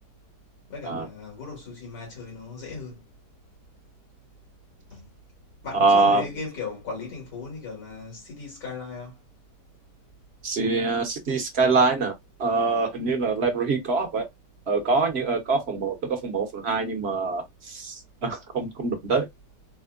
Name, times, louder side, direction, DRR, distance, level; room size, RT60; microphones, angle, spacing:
voice 1, 0.7-3.0 4.9-5.0 5.6-9.2, left 4 dB, 80° left, 2.4 m, -37 dB
voice 2, 5.8-6.2 10.4-12.1 12.4-14.2 14.7-15.9 16.2-17.4 17.8-17.9 18.2-19.3, right 3 dB, 50° right, 1.0 m, -24 dB
4.2 x 2.1 x 2.4 m
omnidirectional pair, 1.7 m